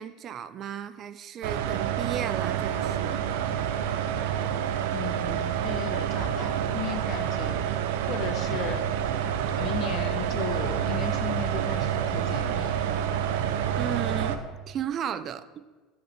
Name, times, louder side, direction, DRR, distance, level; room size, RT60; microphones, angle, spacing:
voice 1, 0.0-3.2 13.8-15.7, right 9 dB, 45° right, 14 dB, 0.4 m, -35 dB
sound 1, 1.4-14.4, right 9 dB, 80° right, 0.6 m, -28 dB
voice 2, 4.9-7.6 8.1-8.8 9.6-12.8, left 8 dB, 50° left, 8 dB, 0.9 m, -36 dB
12.5 x 5.7 x 4.3 m, 1.3 s
supercardioid pair, 110°, 0 cm